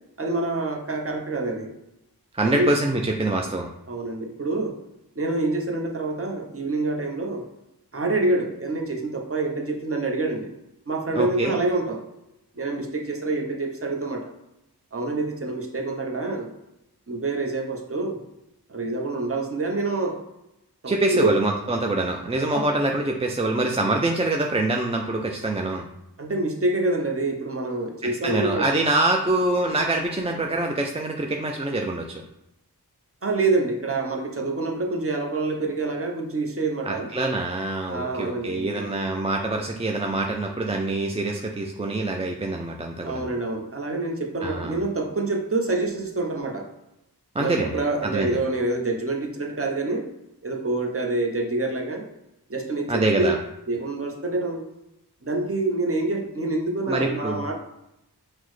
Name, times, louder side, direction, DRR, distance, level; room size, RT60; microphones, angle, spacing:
voice 1, 0.2-1.7 2.4-2.7 3.9-4.8 5.2-7.5 7.9-10.5 10.9-12.0 12.6-14.3 14.9-16.5 17.1-18.2 18.7-20.2 20.8-21.3 22.5-22.6 26.2-28.8 33.2-37.1 37.9-38.9 43.0-46.7 47.4-50.1 50.4-52.0 52.5-53.3 53.7-54.7 55.2-57.5, right 2 dB, 35° right, 1 dB, 0.7 m, -26 dB
voice 2, 2.3-3.7 11.2-11.6 20.9-25.9 28.0-32.2 36.9-43.3 44.4-44.8 47.4-47.7 48.0-48.4 52.9-53.4 56.9-57.5, right 2 dB, 15° right, 1 dB, 0.3 m, -25 dB
5.9 x 2.1 x 3.1 m, 0.86 s
wide cardioid pair, 40°, 40 cm